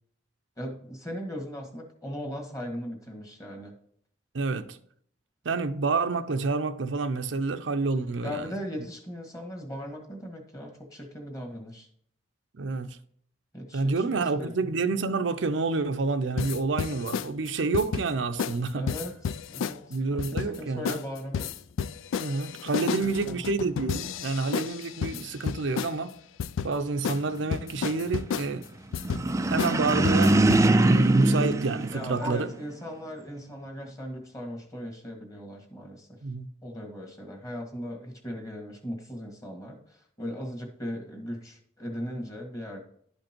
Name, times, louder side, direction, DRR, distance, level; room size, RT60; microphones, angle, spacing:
voice 1, 0.6-3.7 8.2-11.9 13.5-14.5 18.7-21.6 23.0-23.5 31.9-36.2 36.6-42.8, equal, 20° left, 1.7 m, -38 dB
voice 2, 4.3-4.8 5.4-8.5 12.6-13.0 13.7-18.9 19.9-21.0 22.2-26.2 26.6-28.6 29.5-32.5 36.2-36.5, right 3 dB, 75° right, 0.6 m, -28 dB
sound 1, 16.4-17.3 17.7-18.1 18.4-18.6 18.9-19.8 20.2-20.6 20.9-21.1 21.3-26.0 26.4-26.7 27.0-27.2 27.5-28.5 28.9-29.3 29.6-29.7 30.0-30.6, left 6 dB, 90° left, 0.4 m, -31 dB
sound 2, 29.0-32.6, right 2 dB, 15° right, 0.3 m, -22 dB
11.5 x 5.2 x 4.4 m
head